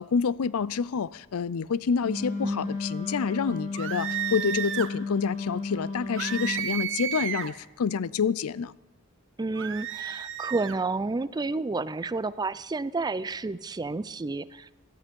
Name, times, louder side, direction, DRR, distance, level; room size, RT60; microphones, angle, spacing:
voice 1, 0.0-8.7, left 6 dB, 70° left, 0.5 m, -28 dB
Wind instrument woodwind instrument, 2.0-6.7, left 3 dB, 35° left, 6.2 m, -33 dB
voice 2, 2.4-2.7 9.4-14.7, right 3 dB, 20° right, 0.4 m, -30 dB
sound 1, 3.7-4.9 6.2-7.6 9.5-10.8, right 10 dB, 60° right, 0.8 m, -32 dB
17.5 x 13.5 x 5.3 m
head